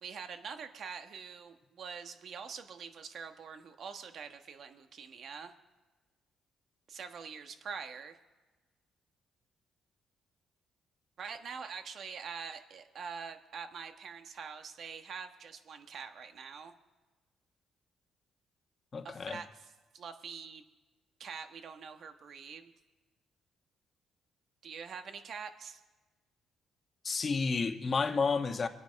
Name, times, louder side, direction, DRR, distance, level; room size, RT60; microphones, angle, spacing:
voice 1, 0.0-5.5 6.9-8.2 11.2-16.7 19.0-20.6 21.2-22.7 24.6-25.8, right 6 dB, 60° right, 1.3 m, -45 dB
voice 2, 18.9-19.4 27.0-28.7, left 4 dB, 40° left, 1.2 m, -31 dB
25.0 x 9.3 x 5.3 m
cardioid pair, 90°, 0 cm